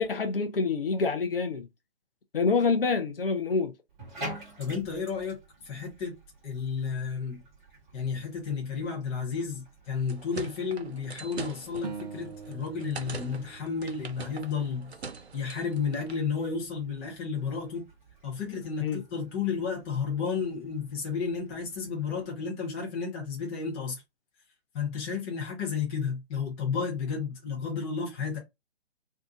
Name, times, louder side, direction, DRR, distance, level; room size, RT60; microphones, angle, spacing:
voice 1, 0.0-1.7 2.3-3.7 18.8-19.0, left 4 dB, 55° left, 0.6 m, -26 dB
Bathtub (filling or washing), 3.9-22.2, right 1 dB, 15° right, 1.0 m, -49 dB
voice 2, 4.6-5.4 5.6-6.1 6.4-7.4 7.9-14.9 15.3-17.8 18.2-24.0 24.7-28.4, left 5 dB, 10° left, 0.7 m, -32 dB
sound 1, 9.8-16.2, right 4 dB, 70° right, 0.7 m, -43 dB
sound 2, 11.8-15.1, right 5 dB, 40° right, 0.5 m, -44 dB
2.7 x 2.4 x 3.6 m
figure-of-eight pair, 135°, 34 cm